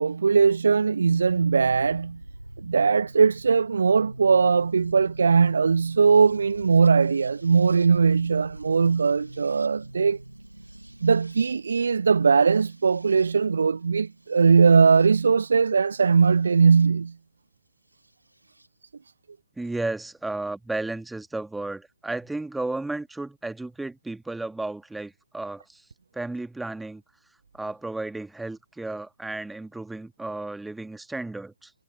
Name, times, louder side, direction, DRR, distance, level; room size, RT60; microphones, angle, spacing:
voice 1, 0.0-2.2 2.6-10.2 11.0-17.1, right 5 dB, 70° right, 0.4 m, -20 dB
sound 1, 1.1-16.9 18.0-18.7, right 1 dB, 90° right, 2.8 m, -45 dB
voice 2, 19.6-25.8 26.1-27.0 27.5-31.7, right 2 dB, 5° right, 1.8 m, -33 dB
figure-of-eight pair, 125°, 0 cm